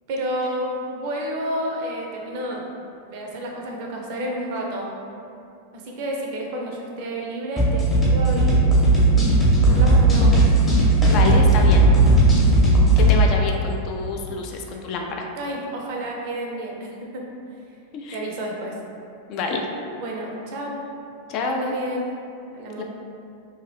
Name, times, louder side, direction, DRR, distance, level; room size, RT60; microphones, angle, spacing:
voice 1, 0.1-2.6 3.1-4.9 5.7-9.1 9.6-10.4 15.4-17.3 18.1-18.8 20.0-20.8 21.5-22.1 22.5-22.8, right 1 dB, 50° right, -1 dB, 0.5 m, -30 dB
sound 1, 7.6-13.1, right 2 dB, 20° left, 0.7 m, -16 dB
voice 2, 11.0-11.9 13.0-15.2 17.9-18.2 19.3-19.7 21.3-21.7 22.8-22.9, left 4 dB, 40° left, 1 dB, 0.3 m, -27 dB
2.7 x 2.5 x 3.1 m, 2.6 s
figure-of-eight pair, 90°, 0 cm